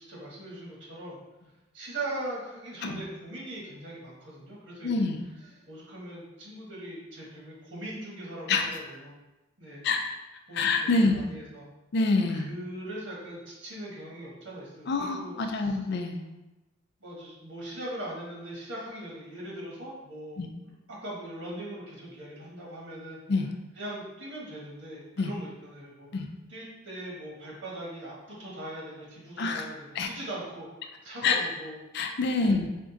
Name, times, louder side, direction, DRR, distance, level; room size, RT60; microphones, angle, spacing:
voice 1, 0.1-1.2 1.7-5.1 5.4-9.1 9.6-9.8 10.5-11.7 12.3-15.8 17.0-23.2 23.8-26.2 26.5-30.7 31.0-31.8 32.4-32.6, right 1 dB, 75° right, -5 dB, 1.3 m, -40 dB
voice 2, 4.8-5.2 8.5-8.7 9.8-10.0 10.5-11.2 11.9-12.5 14.9-16.2 20.4-20.5 23.3-23.5 25.2-25.3 26.1-26.3 29.4-29.7 30.0-30.1 31.2-31.4 31.9-32.7, left 3 dB, 55° left, 4 dB, 0.4 m, -26 dB
4.3 x 2.5 x 3.9 m, 1.1 s
head